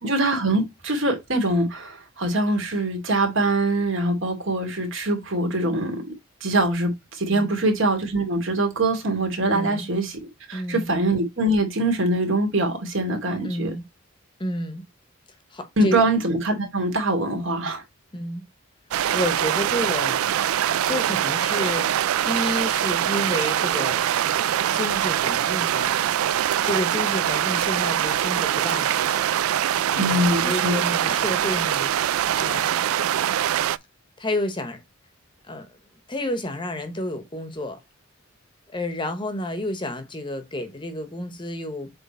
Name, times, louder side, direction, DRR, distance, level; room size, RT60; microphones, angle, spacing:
voice 1, 0.0-6.0 6.4-10.2 10.5-13.7 15.8-17.8 29.9-30.8, right 1 dB, 65° right, 2.5 m, -23 dB
voice 2, 9.5-9.9 10.5-10.9 13.4-13.9 14.4-14.8 15.5-16.0 18.1-18.4 19.1-20.2 20.8-24.1 24.7-26.0 26.6-29.3 29.9-33.1 34.2-34.8 35.5-35.8 36.1-37.8 38.7-41.9, left 1 dB, 25° left, 1.0 m, -30 dB
sound 1, 18.9-33.8, right 10 dB, 85° right, 0.3 m, -23 dB
7.5 x 3.2 x 4.2 m
head